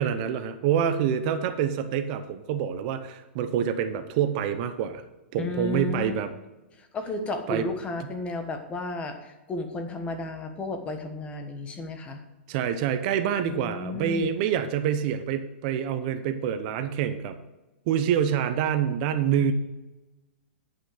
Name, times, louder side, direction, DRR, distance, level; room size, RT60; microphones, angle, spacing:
voice 1, 0.0-5.0 5.3-6.3 7.5-7.7 12.5-17.3 17.9-19.5, right 8 dB, 45° right, 10 dB, 0.8 m, -26 dB
voice 2, 5.4-6.1 6.8-12.2 13.4-14.3, left 2 dB, 20° left, 5 dB, 1.3 m, -33 dB
10.0 x 5.9 x 5.0 m, 1.1 s
hypercardioid pair, 140°, 6 cm